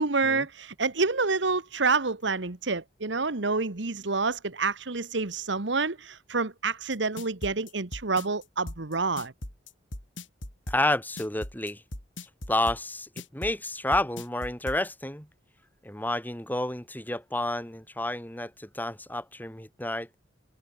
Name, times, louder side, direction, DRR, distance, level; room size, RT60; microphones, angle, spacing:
voice 1, 0.0-9.3, right 4 dB, 70° right, 1.4 m, -28 dB
sound 1, 6.9-14.8, left 1 dB, 85° left, 5.1 m, -39 dB
voice 2, 10.7-11.8 12.5-15.3 15.8-20.1, left 1 dB, 10° left, 5.4 m, -30 dB
head